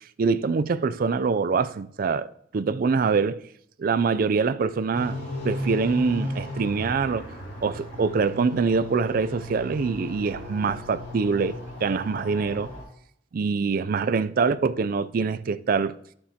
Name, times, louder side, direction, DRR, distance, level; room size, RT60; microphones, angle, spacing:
voice 1, 0.2-3.4 3.8-7.3 7.6-12.7 13.3-15.9, right 5 dB, 50° right, 0.4 m, -24 dB
sound 1, 4.9-12.8, left 1 dB, 60° left, 4.1 m, -36 dB
11.0 x 7.3 x 2.8 m
head